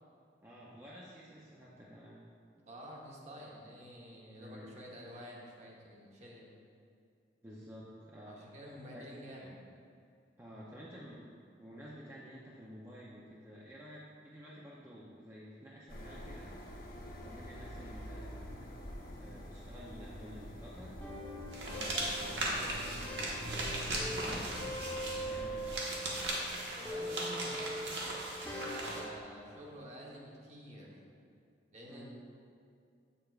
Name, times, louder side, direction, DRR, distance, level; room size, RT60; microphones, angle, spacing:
voice 1, 0.4-2.3 4.4-4.7 7.4-8.4 8.9-9.0 10.4-11.3 11.6-16.5 17.2-18.4 19.1-21.0 21.6-24.7 25.1-25.6 31.9-32.0, equal, 15° right, -6 dB, 0.5 m, -51 dB
voice 2, 2.7-6.6 8.3-9.6 25.3-25.6 26.8-28.0 28.5-31.0 31.7-32.0, equal, 35° right, -3 dB, 1.0 m, -49 dB
sound 1, 15.9-25.7, equal, 50° left, 0.7 m, -46 dB
sound 2, 21.0-26.5 26.8-29.2, equal, 10° left, 0.9 m, -42 dB
sound 3, 21.5-29.0, right 1 dB, 70° right, 1.2 m, -38 dB
7.6 x 6.8 x 2.4 m, 2.4 s
head